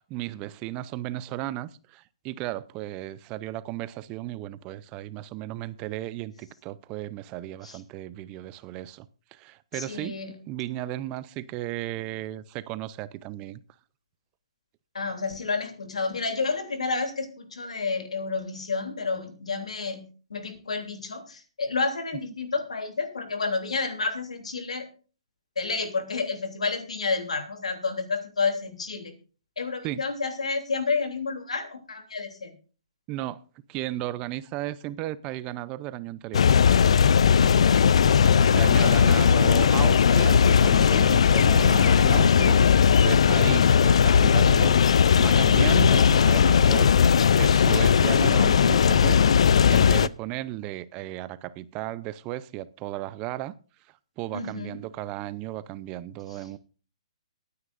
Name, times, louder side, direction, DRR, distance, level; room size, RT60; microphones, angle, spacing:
voice 1, 0.0-10.1 10.5-13.6 29.8-30.0 33.1-33.4 33.7-36.4 38.2-42.6 43.0-49.4 49.6-53.5 54.2-56.6, right 15 dB, 25° right, 0.6 m, -35 dB
voice 2, 9.7-10.3 14.9-20.0 20.3-24.9 25.6-29.1 29.6-32.5 38.3-38.7 39.0-39.5 54.3-54.8, left 4 dB, 90° left, 3.1 m, -30 dB
sound 1, 36.3-50.1, left 7 dB, 70° left, 0.4 m, -18 dB
22.5 x 9.6 x 2.6 m
hypercardioid pair, 150°, 3 cm